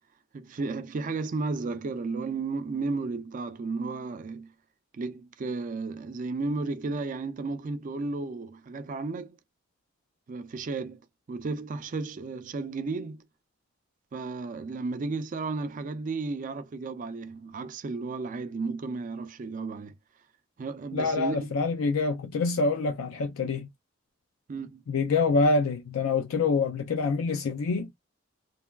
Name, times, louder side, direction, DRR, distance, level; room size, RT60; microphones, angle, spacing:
voice 1, 0.3-4.5 4.9-9.4 10.3-11.0 11.3-13.2 14.1-19.9 20.6-21.5 24.5-24.8, right 3 dB, 40° right, 0.3 m, -33 dB
voice 2, 20.9-23.7 24.9-27.9, left 4 dB, 75° left, 0.4 m, -26 dB
3.2 x 2.2 x 2.2 m
head